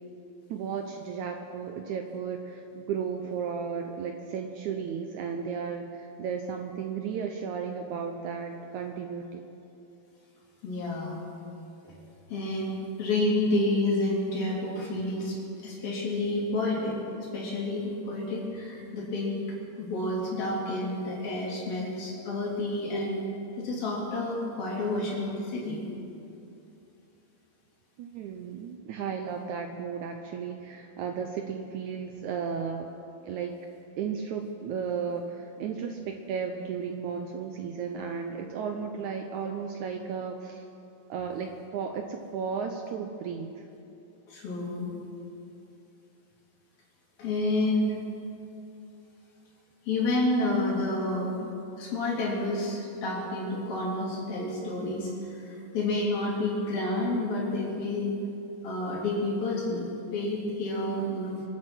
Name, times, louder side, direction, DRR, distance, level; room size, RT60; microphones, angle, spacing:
voice 1, 0.5-9.4 28.0-32.9 33.2-33.6 34.0-40.7 41.1-43.6 60.9-61.4, right 6 dB, 75° right, 4 dB, 1.8 m, -34 dB
voice 2, 10.6-11.2 11.8-12.0 12.3-17.0 17.3-19.4 19.8-23.2 23.6-25.8 44.3-44.9 47.2-48.0 49.9-51.4 51.8-58.2 58.6-61.4, left 2 dB, 80° left, -5 dB, 5.1 m, -29 dB
25.5 x 9.2 x 6.2 m, 2.7 s
omnidirectional pair, 4.1 m